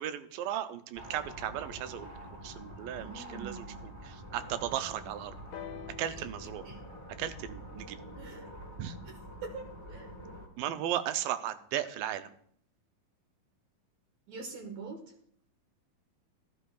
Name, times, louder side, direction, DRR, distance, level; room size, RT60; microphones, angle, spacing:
voice 1, 0.0-2.1 2.4-5.3 6.0-6.6 7.2-8.0 8.8-9.0 10.6-12.3, right 11 dB, 90° right, 11 dB, 2.3 m, -36 dB
sound 1, 0.9-10.5, equal, 20° right, 0.8 m, -46 dB
voice 2, 2.9-3.8 6.6-6.8 8.2-8.5 9.4-10.1 14.3-15.0, right 4 dB, 65° right, 4 dB, 2.1 m, -43 dB
sound 2, 5.5-9.4 10.3-10.4, left 9 dB, 85° left, 2.5 m, -50 dB
13.0 x 11.5 x 2.4 m, 0.64 s
omnidirectional pair, 4.0 m